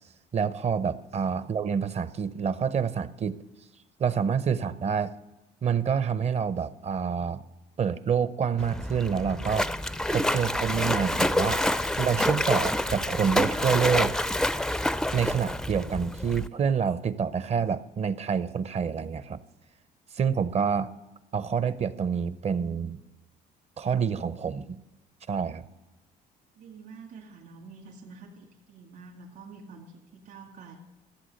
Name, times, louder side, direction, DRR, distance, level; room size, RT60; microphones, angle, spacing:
voice 1, 0.3-3.4 4.0-5.1 5.6-7.4 7.8-9.7 10.1-11.6 12.0-14.2 15.1-19.4 20.1-20.9 21.3-23.0 23.8-24.8 25.3-25.7, right 6 dB, 40° right, 16 dB, 0.7 m, -27 dB
Splash splatter, 8.6-16.5, left 1 dB, 5° left, 0.4 m, -27 dB
voice 2, 26.6-30.8, right 4 dB, 65° right, 1 dB, 2.3 m, -47 dB
14.5 x 7.7 x 6.5 m, 1.1 s
cardioid pair, 110°, 17 cm